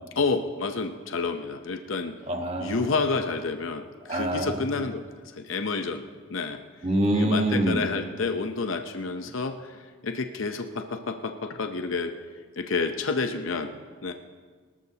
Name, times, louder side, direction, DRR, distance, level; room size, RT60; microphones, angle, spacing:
voice 1, 0.2-2.1 2.6-5.1 5.4-6.0 6.3-6.6 7.1-12.1 12.6-13.7 14.0-14.1, left 4 dB, 70° left, 6 dB, 0.7 m, -29 dB
voice 2, 2.3-2.8 4.1-4.6 6.8-7.8, right 1 dB, 30° right, 3 dB, 1.3 m, -25 dB
23.0 x 13.5 x 2.9 m, 1.5 s
head